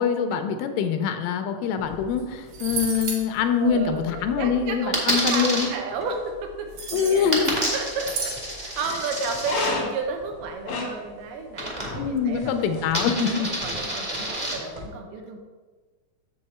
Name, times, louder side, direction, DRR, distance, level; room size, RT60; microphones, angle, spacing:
voice 1, 0.0-5.7 6.9-7.5 11.9-13.5, left 6 dB, 85° left, 7 dB, 2.3 m, -24 dB
sound 1, 1.8-14.9, left 3 dB, 60° left, 1.3 m, -38 dB
sound 2, 2.2-2.3 2.5-3.2 6.7-7.6 8.0-8.4, right 4 dB, 60° right, 2.5 m, -32 dB
voice 2, 3.6-7.4 7.7-12.5 13.1-13.2 13.6-15.4, right 4 dB, 80° right, 3 dB, 2.5 m, -32 dB
Coin (dropping), 4.9-5.7 7.3-9.7 11.6-12.2 12.5-14.5, right 1 dB, 25° right, 0.8 m, -29 dB
7.3 x 6.5 x 4.3 m, 1.4 s
omnidirectional pair, 3.9 m